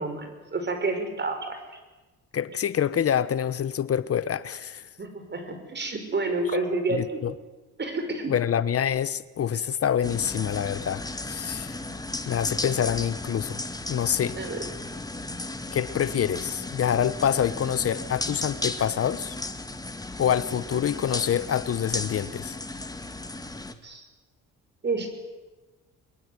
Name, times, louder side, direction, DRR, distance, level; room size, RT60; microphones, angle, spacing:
voice 1, 0.0-1.6 5.0-7.2 7.8-8.4 14.4-14.6 23.8-24.0 24.8-25.1, right 2 dB, 35° right, 7 dB, 5.8 m, -29 dB
voice 2, 2.3-4.9 6.9-7.3 8.3-11.8 12.3-14.4 15.7-19.4 20.2-22.6, left 9 dB, 50° left, 15 dB, 0.9 m, -26 dB
sound 1, 10.0-23.7, left 2 dB, 10° left, 2.0 m, -35 dB
22.5 x 22.0 x 9.7 m, 1.2 s
cardioid pair, 90°, 30 cm